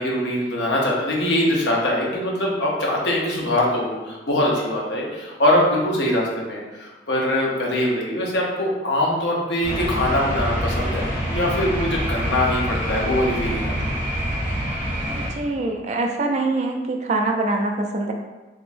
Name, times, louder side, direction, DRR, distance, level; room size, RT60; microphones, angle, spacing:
voice 1, 0.0-13.9, left 1 dB, 65° left, -3 dB, 0.8 m, -23 dB
sound 1, 9.6-15.3, equal, 10° right, 1.0 m, -26 dB
voice 2, 15.1-18.1, right 2 dB, 35° right, 2 dB, 0.4 m, -24 dB
3.5 x 3.0 x 2.6 m, 1.2 s
head